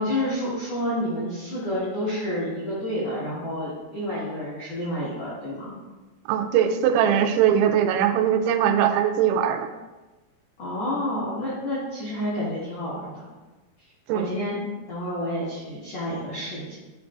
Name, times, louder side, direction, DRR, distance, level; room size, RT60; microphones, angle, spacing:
voice 1, 0.0-5.7 10.6-13.2 14.1-14.6 14.9-16.8, left 1 dB, 85° left, -9 dB, 1.4 m, -29 dB
voice 2, 6.3-9.7 14.1-14.3, right 9 dB, 85° right, 7 dB, 2.9 m, -21 dB
11.5 x 3.8 x 2.3 m, 1.2 s
omnidirectional pair, 5.2 m